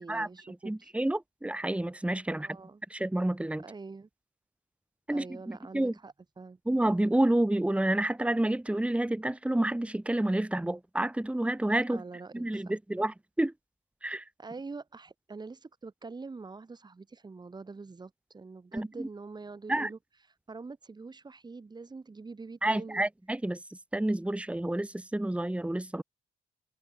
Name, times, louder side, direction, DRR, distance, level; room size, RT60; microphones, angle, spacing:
voice 1, 0.0-0.9 2.4-2.8 3.6-4.1 5.1-6.6 11.9-12.7 14.4-20.0 20.5-23.1, right 4 dB, 30° right, 7.7 m, -45 dB
voice 2, 0.6-2.6 2.9-3.6 5.1-5.9 6.7-12.0 12.3-13.5 14.0-14.3 18.7-19.1 19.7-19.9 22.6-26.0, right 1 dB, 10° right, 3.0 m, -29 dB
cardioid pair, 100°, 15 cm